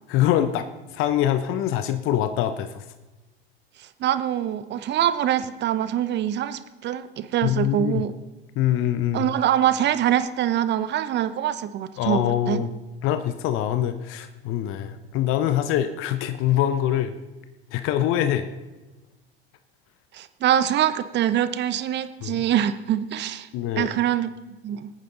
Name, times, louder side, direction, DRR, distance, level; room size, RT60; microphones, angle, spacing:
voice 1, 0.1-2.8 7.4-8.0 8.5-9.3 12.0-12.7 13.0-17.1 17.7-18.5 22.2-22.4 23.5-23.9, left 11 dB, 40° left, 10 dB, 0.8 m, -24 dB
voice 2, 3.8-8.1 9.1-12.7 20.1-23.5 23.8-24.3 24.6-24.9, right 11 dB, 35° right, 13 dB, 0.8 m, -24 dB
21.0 x 9.1 x 3.9 m, 1.1 s
figure-of-eight pair, 80°, 32 cm